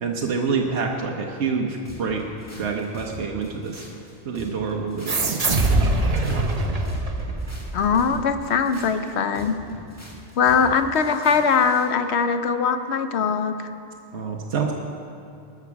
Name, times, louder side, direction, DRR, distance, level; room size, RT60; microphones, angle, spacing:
voice 1, 0.0-2.3 2.6-3.9 4.2-6.8 14.1-14.7, right 5 dB, 70° right, 0 dB, 1.2 m, -27 dB
sound 1, 1.8-11.9, left 1 dB, 15° left, 1.6 m, -42 dB
sound 2, 5.1-8.1, right 2 dB, 35° right, 1.0 m, -23 dB
voice 2, 7.7-9.5 10.4-13.5, left 6 dB, 65° left, 9 dB, 1.0 m, -21 dB
19.5 x 7.2 x 6.0 m, 2.6 s
omnidirectional pair, 1.2 m